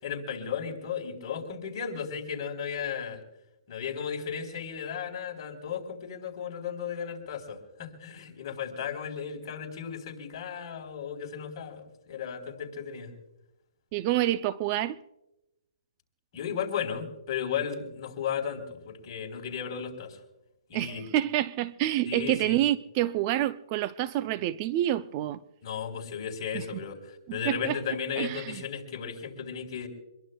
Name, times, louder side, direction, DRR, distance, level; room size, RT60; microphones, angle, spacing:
voice 1, 0.0-3.2 3.7-13.1 16.3-20.2 20.7-21.1 22.0-22.6 25.6-29.9, left 7 dB, 40° left, 4.0 m, -35 dB
voice 2, 13.9-15.0 20.7-25.4 26.5-26.6 27.3-27.8 28.2-28.6, right 13 dB, 30° right, 0.4 m, -28 dB
25.5 x 22.0 x 2.3 m
hypercardioid pair, 155°, 3 cm